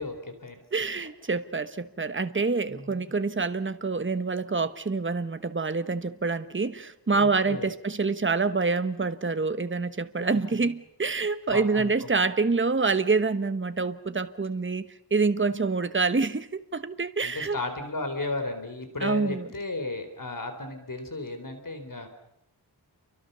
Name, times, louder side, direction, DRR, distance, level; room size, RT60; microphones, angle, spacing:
voice 1, 0.0-0.6 2.7-3.1 7.1-7.7 10.2-10.7 11.5-11.9 17.2-22.1, left 2 dB, 50° left, 7 dB, 4.0 m, -34 dB
voice 2, 0.7-17.6 19.0-19.5, right 4 dB, 30° right, 11 dB, 1.2 m, -27 dB
29.0 x 24.0 x 6.9 m, 0.82 s
wide cardioid pair, 85°, 42 cm